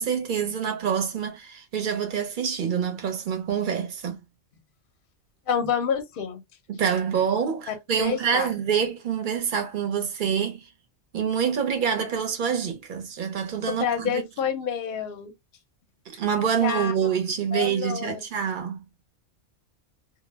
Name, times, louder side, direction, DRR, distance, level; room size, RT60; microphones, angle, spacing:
voice 1, 0.0-4.2 6.7-10.7 11.1-14.2 16.1-18.8, right 7 dB, 50° right, 0.6 m, -26 dB
voice 2, 5.5-6.4 7.7-8.5 13.7-15.3 16.6-16.9 17.5-18.2, left 7 dB, 55° left, 0.6 m, -28 dB
2.1 x 2.0 x 3.1 m
omnidirectional pair, 1.3 m